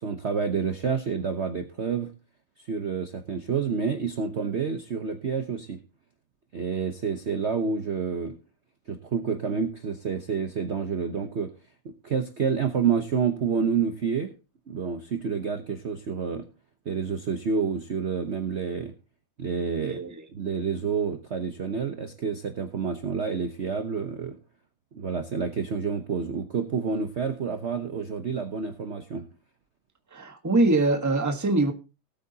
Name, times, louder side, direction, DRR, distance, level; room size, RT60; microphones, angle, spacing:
voice 1, 0.0-2.1 2.7-5.8 6.5-8.3 8.9-11.5 11.8-14.3 14.7-16.4 16.8-18.9 19.4-20.0 20.3-24.3 24.9-29.2, right 6 dB, 45° right, 6 dB, 1.0 m, -28 dB
voice 2, 19.8-20.2 30.1-31.7, right 2 dB, 10° right, 5 dB, 1.1 m, -23 dB
19.0 x 8.4 x 2.8 m, 0.31 s
omnidirectional pair, 2.0 m